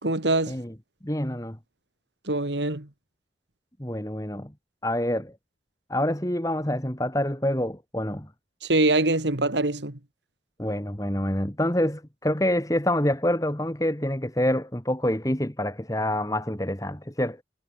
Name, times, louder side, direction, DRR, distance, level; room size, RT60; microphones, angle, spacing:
voice 1, 0.0-0.6 2.3-2.9 8.6-10.0, right 2 dB, 80° right, 2.7 m, -24 dB
voice 2, 1.0-1.6 3.8-4.5 4.8-5.3 5.9-8.3 10.6-17.4, left 1 dB, 20° left, 2.4 m, -26 dB
head